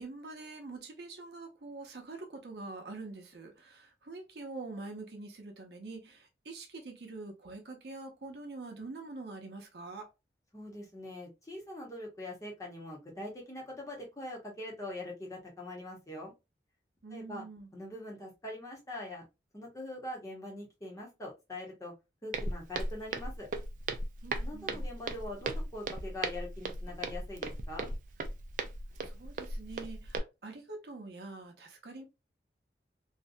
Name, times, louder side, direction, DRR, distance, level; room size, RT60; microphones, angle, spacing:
voice 1, 0.0-10.1 17.0-17.7 24.2-24.9 29.0-32.0, right 3 dB, 70° right, 0.7 m, -45 dB
voice 2, 10.5-16.3 17.1-17.4 17.7-19.2 19.5-21.9 22.2-23.5 24.4-27.9, left 1 dB, 20° left, 0.8 m, -43 dB
Walk footsteps, 22.3-30.2, right 2 dB, 45° right, 0.3 m, -37 dB
2.6 x 2.2 x 2.4 m
head